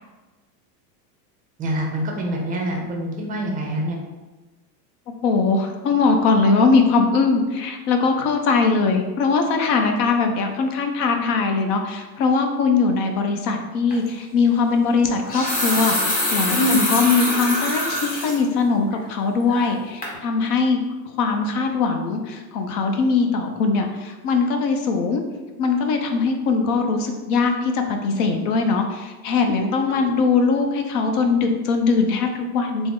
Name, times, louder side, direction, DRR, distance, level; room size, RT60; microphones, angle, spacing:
voice 1, 1.6-4.0 16.5-16.8, equal, 20° right, 0 dB, 0.4 m, -25 dB
voice 2, 5.2-20.8 21.2-25.2 25.6-32.9, left 4 dB, 65° left, 4 dB, 0.7 m, -21 dB
sound 1, 13.9-14.1 15.1-18.4 18.9-19.0 19.5-19.8 20.0-20.2, left 1 dB, 20° left, 0.7 m, -24 dB
3.5 x 2.0 x 3.6 m, 1.2 s
supercardioid pair, 120°, 49 cm